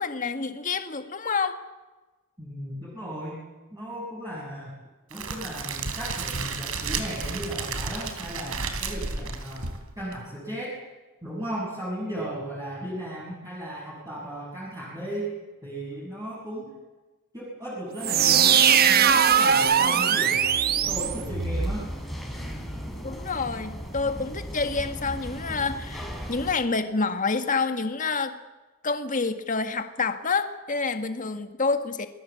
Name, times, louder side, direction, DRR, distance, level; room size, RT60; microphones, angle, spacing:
voice 1, 0.0-1.6 23.0-28.4 28.8-32.1, left 4 dB, 35° left, 8 dB, 1.8 m, -28 dB
voice 2, 2.4-3.4 3.7-4.7 5.1-9.7 10.0-10.7 11.2-15.3 15.6-16.7 17.3-18.6 18.9-21.9, right 1 dB, 15° right, -6 dB, 6.8 m, -35 dB
Crackle, 5.1-10.2, right 4 dB, 75° right, 3.5 m, -32 dB
sound 1, 18.0-21.8, right 7 dB, 45° right, 1.2 m, -20 dB
sound 2, 20.8-26.5, equal, ahead, 4.1 m, -37 dB
27.5 x 20.5 x 8.4 m, 1.2 s
head